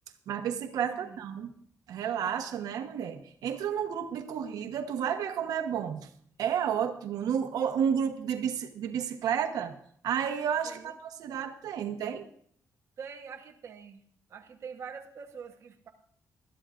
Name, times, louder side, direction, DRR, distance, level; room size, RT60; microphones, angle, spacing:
voice 1, 0.3-1.5 1.9-6.1 6.4-9.7 10.0-12.3, right 8 dB, 80° right, 6 dB, 1.1 m, -31 dB
voice 2, 10.6-11.0 13.0-14.0 14.3-15.9, right 6 dB, 45° right, 2 dB, 1.1 m, -44 dB
21.0 x 12.5 x 2.5 m, 0.63 s
wide cardioid pair, 175°, 6 cm